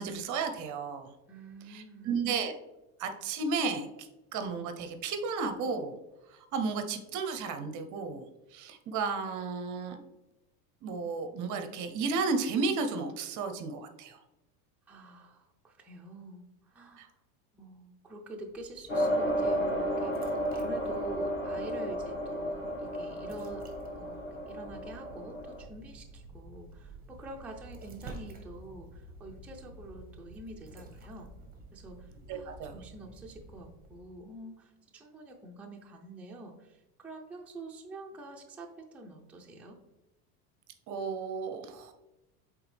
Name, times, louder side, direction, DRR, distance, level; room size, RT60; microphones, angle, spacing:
voice 1, 0.0-1.1 1.7-2.6 3.0-6.0 6.3-10.0 10.8-14.2 17.0-17.1 32.3-32.7 40.9-41.9, right 4 dB, 40° right, 7 dB, 0.7 m, -33 dB
voice 2, 1.3-2.2 14.9-17.1 17.5-23.7 23.9-31.3 31.7-39.8, right 2 dB, 5° right, -1 dB, 0.6 m, -47 dB
sound 1, 18.4-34.3, right 2 dB, 20° right, 1.4 m, -50 dB
sound 2, 18.9-25.6, equal, 25° left, 1.3 m, -33 dB
7.9 x 3.6 x 3.3 m, 0.98 s
supercardioid pair, 120°, 45 cm